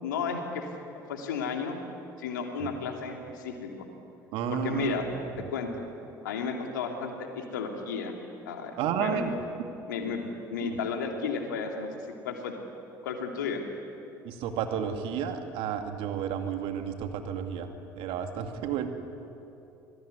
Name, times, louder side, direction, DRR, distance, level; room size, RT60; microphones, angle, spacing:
voice 1, 0.0-0.6 1.1-1.8 2.2-3.7 4.5-5.1 5.5-5.7 6.2-8.1 8.5-9.2 9.9-10.2 10.5-11.9 12.2-12.5 13.0-13.6, left 6 dB, 80° left, 3 dB, 3.0 m, -33 dB
voice 2, 4.3-5.2 8.8-9.3 10.6-10.8 14.2-17.7 18.0-18.9, right 8 dB, 60° right, 6 dB, 2.3 m, -31 dB
25.5 x 19.0 x 9.7 m, 2.8 s
figure-of-eight pair, 60°, 10 cm